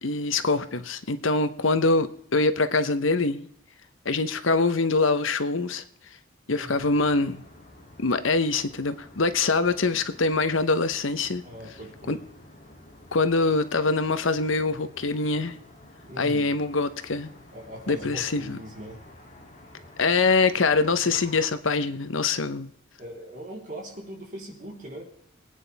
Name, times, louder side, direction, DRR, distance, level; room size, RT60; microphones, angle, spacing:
voice 1, 0.0-3.5 4.0-5.8 6.5-7.4 8.0-11.4 12.1-12.2 13.1-15.6 16.2-17.3 17.9-18.6 20.0-22.7, left 3 dB, 85° left, 11 dB, 1.0 m, -24 dB
voice 2, 6.5-6.8 11.4-12.2 16.0-16.5 17.5-19.0 23.0-25.0, equal, 40° right, -2 dB, 3.9 m, -40 dB
sound 1, 6.6-21.5, left 1 dB, 40° left, 2.9 m, -50 dB
24.0 x 9.2 x 3.5 m, 0.69 s
head